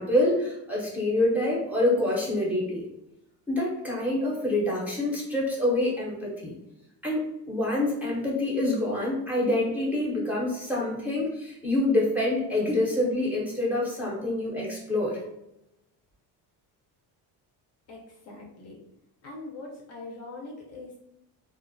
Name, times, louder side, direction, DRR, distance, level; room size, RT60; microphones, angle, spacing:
voice 1, 0.0-2.9 3.5-6.5 7.0-15.2, left 1 dB, 5° right, -5 dB, 0.6 m, -26 dB
voice 2, 17.9-18.8 19.2-21.1, left 2 dB, 40° left, -2 dB, 0.5 m, -42 dB
2.4 x 2.0 x 2.5 m, 0.85 s
cardioid pair, 140°, 40 cm